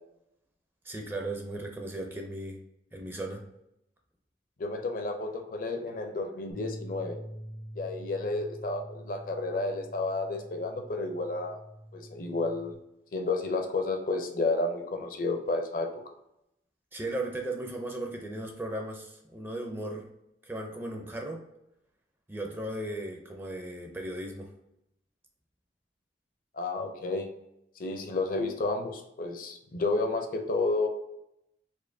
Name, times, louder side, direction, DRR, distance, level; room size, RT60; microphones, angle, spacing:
voice 1, 0.8-2.6 2.9-3.4 16.9-20.1 20.4-21.4 22.3-24.5, right 1 dB, 10° right, 2 dB, 0.4 m, -36 dB
voice 2, 4.6-7.2 7.8-11.6 11.9-12.8 13.1-15.9 26.5-27.3 27.8-30.9, left 3 dB, 50° left, 5 dB, 0.5 m, -31 dB
sound 1, 6.5-12.7, equal, 90° left, 1.3 m, -45 dB
4.3 x 2.6 x 2.6 m, 0.82 s
head